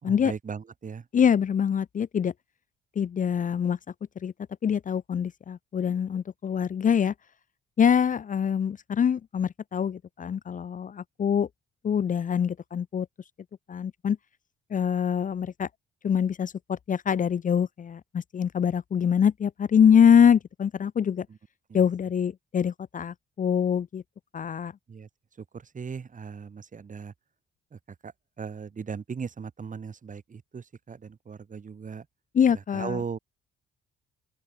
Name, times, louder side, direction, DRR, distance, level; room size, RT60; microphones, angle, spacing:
voice 1, 0.0-1.1 21.3-21.4 21.7-21.8 24.9-27.1 27.7-32.1 32.5-33.2, right 6 dB, 40° right, 5.6 m, -38 dB
voice 2, 1.1-2.3 3.0-3.8 4.2-4.3 4.6-7.1 7.8-11.5 11.8-13.1 13.7-14.2 14.7-15.7 16.0-21.3 21.7-24.0 24.3-24.7 32.3-33.0, left 8 dB, 40° left, 0.8 m, -24 dB
open air
cardioid pair, 90°, 20 cm